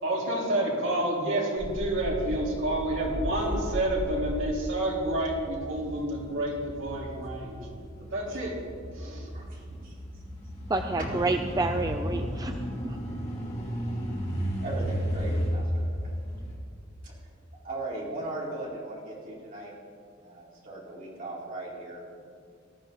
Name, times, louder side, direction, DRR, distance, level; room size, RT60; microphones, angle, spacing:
voice 1, 0.0-7.6 8.1-8.5 8.9-9.3, right 1 dB, 75° right, -4 dB, 3.9 m, -29 dB
sound 1, 1.6-16.6, equal, 35° left, 2.7 m, -34 dB
voice 2, 9.3-10.0 11.0-11.3 11.7-11.9 14.6-16.1 17.0-17.2 17.6-19.7 20.2-22.0, right 2 dB, 45° right, -6 dB, 4.6 m, -38 dB
voice 3, 10.7-13.0, right 2 dB, 20° right, 6 dB, 0.5 m, -29 dB
19.0 x 13.5 x 4.0 m, 2.2 s
head